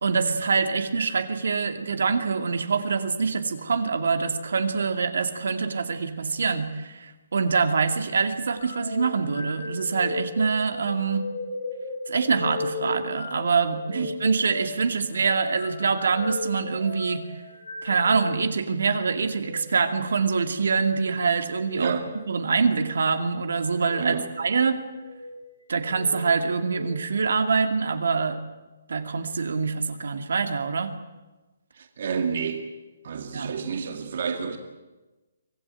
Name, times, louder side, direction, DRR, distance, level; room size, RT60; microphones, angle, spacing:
voice 1, 0.0-11.3 12.1-17.3 17.8-21.9 22.3-24.8 25.7-28.4 28.9-30.9 33.3-33.5, right 5 dB, 65° right, 8 dB, 2.3 m, -25 dB
sound 1, 8.6-18.5 19.3-19.6 21.6-21.9 22.7-23.2 23.8-24.1 24.9-25.4 25.8-26.9, left 3 dB, 70° left, 5.0 m, -36 dB
voice 2, 21.8-22.2 24.0-24.3 31.8-32.6 33.0-34.6, right 6 dB, 40° right, 6 dB, 2.0 m, -29 dB
24.5 x 18.0 x 9.1 m, 1.2 s
hypercardioid pair, 180°, 0 cm